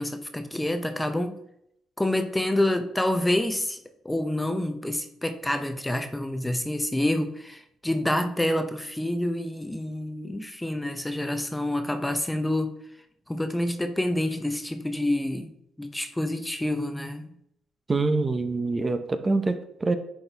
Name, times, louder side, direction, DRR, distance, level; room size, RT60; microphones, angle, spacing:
voice 1, 0.0-1.4 2.0-3.8 4.0-12.7 13.3-17.3, left 1 dB, 10° left, 8 dB, 0.7 m, -27 dB
voice 2, 17.9-19.9, right 3 dB, 25° right, 9 dB, 0.7 m, -25 dB
10.5 x 4.3 x 3.4 m, 0.76 s
cardioid pair, 90°, 0 cm